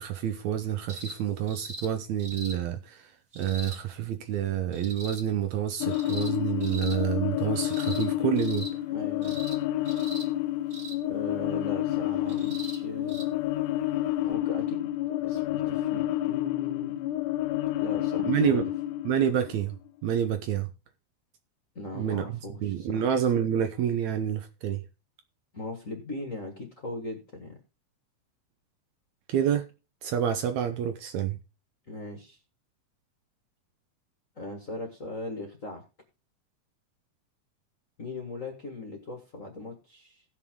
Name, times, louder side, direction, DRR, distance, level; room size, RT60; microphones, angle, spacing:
voice 1, 0.0-8.7 18.2-18.7 19.0-19.8 20.0-20.7 22.0-24.8 29.3-29.7 30.0-31.4, right 9 dB, 70° right, 1.9 m, -28 dB
sound 1, 0.9-1.2 1.5-1.9 2.2-2.6 3.3-3.8 4.7-5.2 5.9-6.3 6.6-7.0 7.6-8.1 8.4-8.7 9.2-9.6 9.9-10.3 10.7-11.0 12.3-12.8 13.1-13.2 14.3-14.4, right 1 dB, 35° right, 1.8 m, -41 dB
sound 2, 5.8-19.9, left 14 dB, 80° left, 2.1 m, -29 dB
voice 2, 8.9-9.5 11.0-13.3 14.3-14.9 15.2-17.0 17.8-18.6 21.7-23.0 25.5-27.6 31.9-32.4 34.3-35.8 38.0-40.2, left 2 dB, 35° left, 1.3 m, -39 dB
17.0 x 6.0 x 3.7 m
omnidirectional pair, 3.7 m